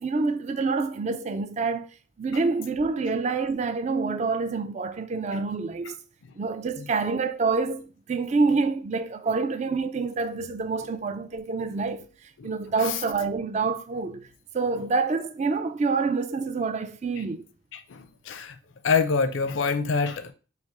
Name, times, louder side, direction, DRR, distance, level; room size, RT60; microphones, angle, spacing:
voice 1, 0.0-1.9 2.2-6.0 6.3-14.3 14.5-17.5, right 4 dB, 35° right, 0.3 m, -27 dB
voice 2, 17.7-18.6 18.8-20.3, left 5 dB, 75° left, 0.5 m, -26 dB
3.3 x 2.8 x 4.6 m
head